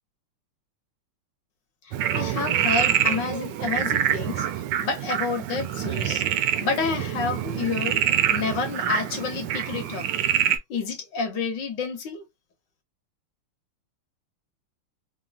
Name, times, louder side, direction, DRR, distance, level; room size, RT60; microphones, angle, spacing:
voice 1, 1.8-4.5 4.8-6.2 6.6-8.0 8.3-10.1 10.7-12.2, left 4 dB, 60° left, 1.4 m, -29 dB
Frog, 1.9-10.6, right 10 dB, 75° right, 1.0 m, -26 dB
3.8 x 2.2 x 2.4 m
omnidirectional pair, 2.4 m